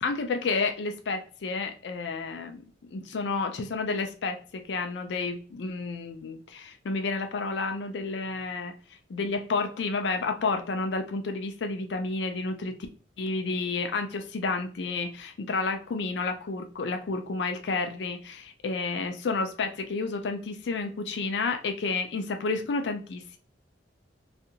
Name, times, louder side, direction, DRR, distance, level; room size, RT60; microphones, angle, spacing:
voice 1, 0.0-2.6 2.9-8.7 9.1-12.8 13.2-23.4, left 3 dB, 70° left, 0.4 m, -30 dB
2.8 x 2.5 x 2.5 m
head